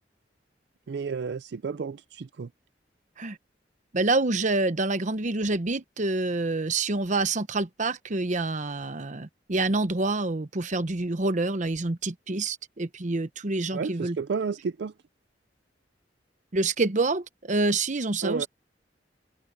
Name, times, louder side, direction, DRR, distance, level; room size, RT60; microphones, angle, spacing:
voice 1, 0.9-2.5 13.7-14.9 18.2-18.5, right 5 dB, 70° right, 0.4 m, -31 dB
voice 2, 3.9-14.2 16.5-18.5, right 2 dB, 45° right, 1.0 m, -27 dB
open air
head